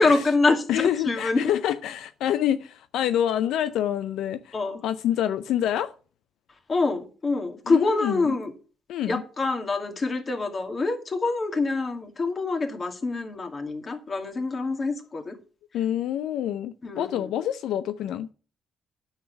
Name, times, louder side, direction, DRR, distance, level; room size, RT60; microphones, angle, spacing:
voice 1, 0.0-1.5 4.5-4.8 6.7-8.5 9.0-15.4 16.8-17.3, left 3 dB, 35° left, 2.4 m, -25 dB
voice 2, 0.7-4.5 4.8-5.9 7.7-8.3 8.9-9.2 15.7-18.3, left 11 dB, 85° left, 0.5 m, -27 dB
9.4 x 6.6 x 5.9 m
cardioid pair, 90°, 0 cm